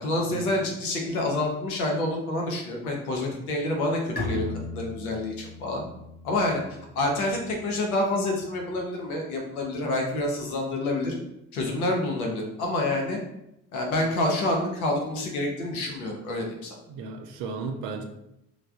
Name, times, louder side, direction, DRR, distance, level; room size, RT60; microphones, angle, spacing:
voice 1, 0.0-4.5 4.7-5.8 6.2-6.6 6.9-11.1 11.5-13.2 13.7-16.8, left 1 dB, 80° left, 0 dB, 0.7 m, -27 dB
Bowed string instrument, 4.2-7.6, left 2 dB, 20° left, 1.0 m, -37 dB
voice 2, 16.9-18.1, right 4 dB, 55° right, 4 dB, 0.5 m, -35 dB
3.2 x 2.0 x 3.5 m, 0.84 s
figure-of-eight pair, 40°, 43 cm